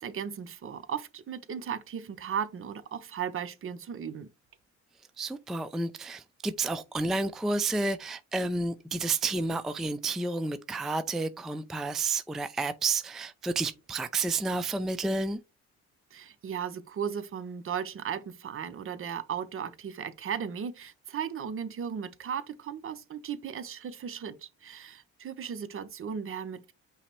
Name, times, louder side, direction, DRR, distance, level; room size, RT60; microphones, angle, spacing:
voice 1, 0.0-4.3 16.1-26.7, right 7 dB, 45° right, 0.6 m, -36 dB
voice 2, 5.2-15.4, right 3 dB, ahead, 0.3 m, -30 dB
5.6 x 2.0 x 4.4 m
cardioid pair, 90°, 30 cm